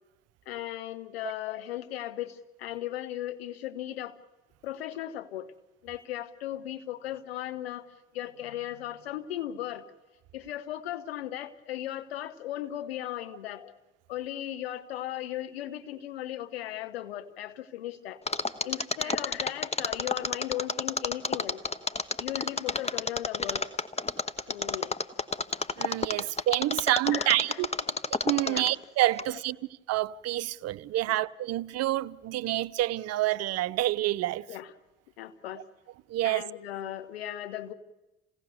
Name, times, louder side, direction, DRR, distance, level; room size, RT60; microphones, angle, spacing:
voice 1, 0.5-4.2 4.6-5.5 5.8-9.8 10.3-13.8 14.1-18.2 18.6-21.6 22.2-23.7 24.5-24.9 26.2-26.3 27.1-27.6 27.9-28.0 28.4-28.7 29.3-29.4 31.1-31.2 34.5-34.7 35.2-35.7 36.2-37.7, left 12 dB, 85° left, 1.1 m, -37 dB
Mechanisms, 18.3-28.8 29.2-29.3, left 4 dB, 20° left, 1.1 m, -29 dB
voice 2, 25.8-27.7 28.2-29.6 29.9-34.4 36.1-36.4, right 15 dB, 55° right, 0.7 m, -28 dB
28.0 x 17.0 x 7.0 m
hypercardioid pair, 55°, 30 cm